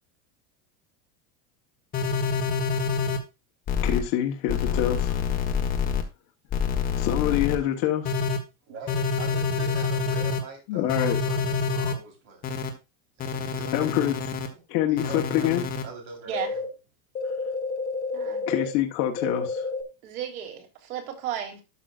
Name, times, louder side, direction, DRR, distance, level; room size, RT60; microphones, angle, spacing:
sound 1, 1.9-3.2 3.7-4.0 4.5-6.0 6.5-7.6 8.0-8.4 8.9-10.4 10.9-11.9 12.4-12.7 13.2-14.5 15.0-15.8 16.3-16.6 17.1-18.7 19.2-19.8, left 5 dB, 20° left, 1.2 m, -27 dB
voice 1, 3.8-5.1 7.0-8.0 10.7-11.2 13.7-14.3 14.7-15.6 18.5-19.6, left 12 dB, 45° left, 1.2 m, -26 dB
voice 2, 8.7-12.5 13.2-14.0 14.5-14.7 15.0-15.5 15.8-16.7, right 3 dB, 35° right, 3.9 m, -43 dB
voice 3, 18.1-18.4 20.0-21.6, right 9 dB, 80° right, 3.7 m, -34 dB
12.5 x 6.3 x 2.4 m
supercardioid pair, 180°, 43 cm